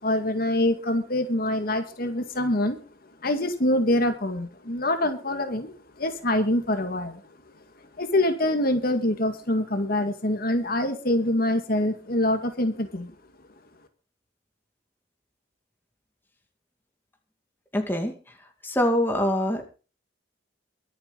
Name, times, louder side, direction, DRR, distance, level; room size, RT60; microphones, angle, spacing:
voice 1, 0.0-2.8 3.2-7.2 8.0-13.1, left 1 dB, 55° left, 6 dB, 2.1 m, -25 dB
voice 2, 17.7-18.1 18.6-19.7, left 1 dB, 10° left, 3 dB, 2.5 m, -24 dB
23.5 x 8.8 x 4.0 m, 0.35 s
head